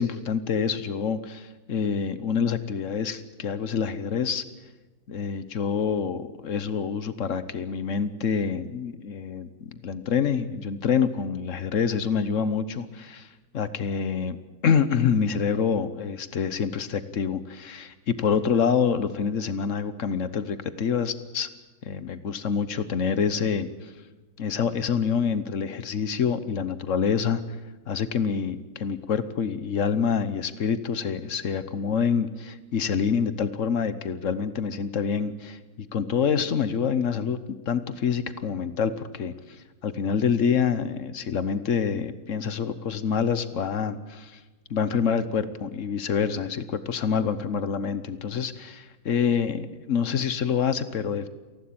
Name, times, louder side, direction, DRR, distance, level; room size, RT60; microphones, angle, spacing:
voice 1, 0.0-4.4 5.1-13.3 13.5-21.5 21.8-23.7 24.4-27.4 27.9-37.4 37.7-39.3 39.8-44.4 44.7-51.3, left 6 dB, 50° left, 13 dB, 1.0 m, -26 dB
28.5 x 12.0 x 8.7 m, 1.2 s
omnidirectional pair, 2.2 m